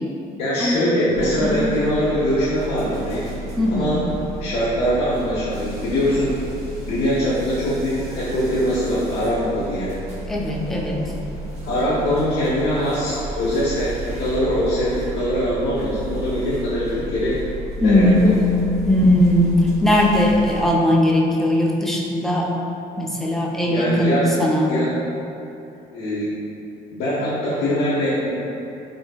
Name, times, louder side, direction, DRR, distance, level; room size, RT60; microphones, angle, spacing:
voice 1, 0.4-3.3 3.7-4.0 4.4-6.3 6.8-9.9 11.7-17.4 17.8-18.3 23.7-24.3 24.7-24.9 25.9-26.3 26.9-28.3, equal, 75° left, -10 dB, 0.7 m, -22 dB
sound 1, 1.1-20.7, right 1 dB, 40° right, 0.7 m, -33 dB
voice 2, 3.6-4.0 10.3-11.1 17.8-18.5 18.8-22.5 23.0-24.7, left 1 dB, ahead, -2 dB, 0.3 m, -19 dB
3.8 x 2.5 x 2.3 m, 2.8 s
cardioid pair, 110°, 17 cm